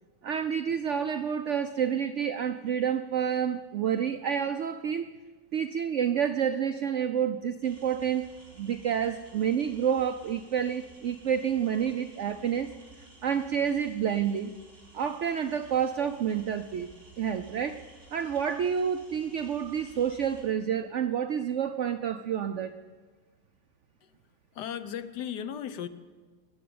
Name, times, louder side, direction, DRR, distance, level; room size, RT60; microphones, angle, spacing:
voice 1, 0.2-5.1 5.5-8.3 8.6-12.7 13.2-14.5 14.9-16.9 17.2-17.8 18.1-22.8, right 8 dB, 75° right, 9 dB, 0.6 m, -29 dB
sound 1, 7.6-20.5, right 2 dB, 30° right, 4.6 m, -55 dB
voice 2, 24.5-25.9, left 9 dB, 70° left, 12 dB, 1.3 m, -36 dB
21.0 x 7.5 x 8.6 m, 1.4 s
omnidirectional pair, 1.9 m